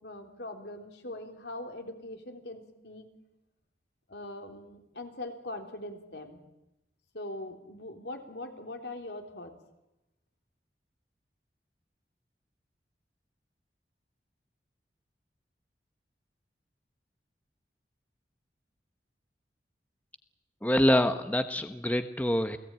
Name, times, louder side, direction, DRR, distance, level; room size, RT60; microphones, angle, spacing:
voice 1, 0.0-3.1 4.1-6.4 7.1-9.5, left 1 dB, 75° left, 4 dB, 3.6 m, -41 dB
voice 2, 20.6-22.6, left 1 dB, 10° left, 8 dB, 1.0 m, -25 dB
28.5 x 18.5 x 9.0 m, 0.93 s
head